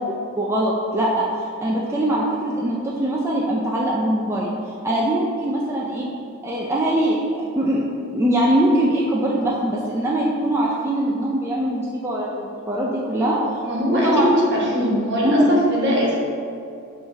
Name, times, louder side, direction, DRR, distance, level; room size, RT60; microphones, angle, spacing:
voice 1, 0.4-4.5 4.8-6.1 6.4-7.2 7.6-13.4 13.9-14.3 15.2-15.4, right 1 dB, 10° right, -5 dB, 0.5 m, -22 dB
voice 2, 13.6-16.1, equal, 50° right, -4 dB, 1.4 m, -21 dB
5.7 x 3.2 x 5.5 m, 2.5 s
head